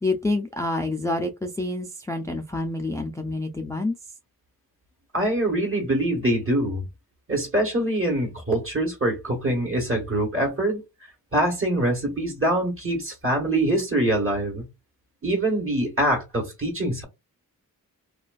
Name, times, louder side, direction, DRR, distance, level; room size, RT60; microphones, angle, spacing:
voice 1, 0.0-4.0, left 2 dB, 10° left, 0.4 m, -27 dB
voice 2, 5.1-6.8 7.3-10.8 11.3-14.6 15.2-17.0, right 1 dB, 35° right, 1.3 m, -24 dB
2.5 x 2.3 x 2.3 m
cardioid pair, 55°, 37 cm